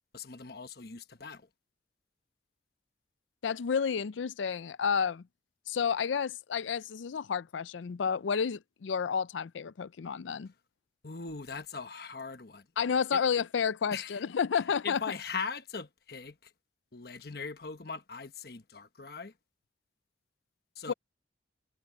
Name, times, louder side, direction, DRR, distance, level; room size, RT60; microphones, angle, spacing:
voice 1, 0.1-1.5 11.0-12.6 13.1-13.2 13.9-14.2 14.8-16.5 16.9-19.3 20.8-20.9, left 5 dB, 55° left, 1.2 m, -40 dB
voice 2, 3.4-5.2 5.7-10.5 12.8-15.0 20.9-21.0, left 6 dB, 90° left, 0.5 m, -30 dB
head